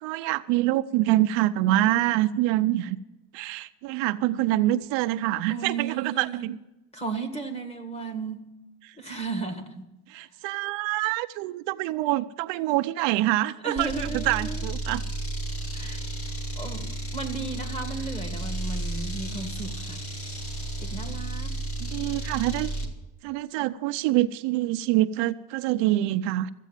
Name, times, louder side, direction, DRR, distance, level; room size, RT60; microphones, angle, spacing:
voice 1, 0.0-3.0 3.3-6.6 8.8-8.9 10.1-15.0 21.8-22.7 23.2-26.5, right 15 dB, 70° right, 10 dB, 0.7 m, -25 dB
voice 2, 5.5-6.5 6.9-8.5 9.0-9.9 13.6-14.7 15.7-20.0 20.8-21.5, right 4 dB, 15° left, 6 dB, 1.7 m, -35 dB
sound 1, 13.8-23.0, right 1 dB, 30° left, 1.8 m, -33 dB
14.0 x 8.4 x 9.1 m, 0.96 s
cardioid pair, 155°, 46 cm